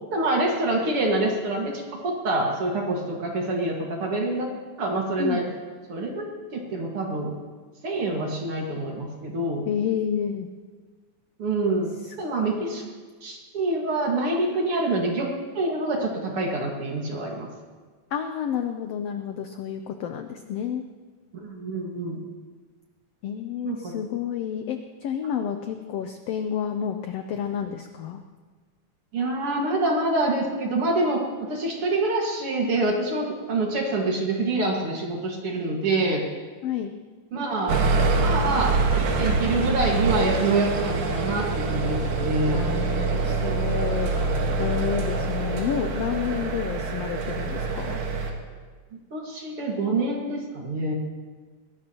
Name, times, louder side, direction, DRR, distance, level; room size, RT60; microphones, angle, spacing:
voice 1, 0.1-4.5 4.8-5.5 5.9-7.3 7.8-9.6 11.4-12.8 13.2-15.3 15.6-17.5 21.4-22.3 23.6-24.0 29.1-36.2 37.3-37.8 38.2-42.7 49.1-50.9, right 2 dB, 50° right, 0 dB, 2.4 m, -26 dB
voice 2, 9.7-10.5 12.1-12.2 18.1-20.8 23.2-28.2 36.6-36.9 42.5-48.0, left 8 dB, 80° left, 6 dB, 1.4 m, -30 dB
sound 1, 37.7-48.3, right 3 dB, 80° right, 3.0 m, -25 dB
21.0 x 18.0 x 2.9 m, 1.5 s
omnidirectional pair, 3.6 m